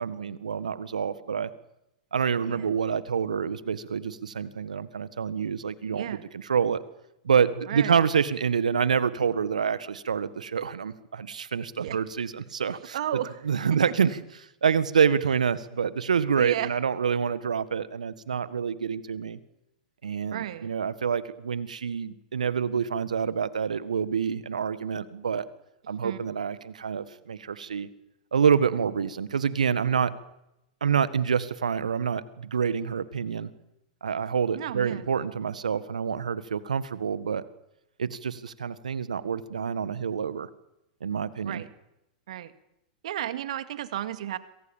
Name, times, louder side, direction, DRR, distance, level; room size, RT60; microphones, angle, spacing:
voice 1, 0.0-1.5 2.1-6.8 7.2-13.0 13.4-14.2 14.6-19.4 20.0-25.4 25.9-27.9 28.3-30.1 30.8-33.5 34.0-37.4 38.0-40.5 41.0-41.6, right 6 dB, 80° right, 15 dB, 1.7 m, -27 dB
voice 2, 5.9-6.2 7.7-8.1 11.8-12.0 12.9-13.4 13.7-14.0 16.4-16.7 20.3-20.7 25.9-26.2 34.5-35.1 41.5-41.7 42.3-42.5 43.0-44.4, right 12 dB, 65° right, 11 dB, 2.2 m, -33 dB
27.0 x 24.5 x 7.4 m, 0.86 s
hypercardioid pair, 105°, 4 cm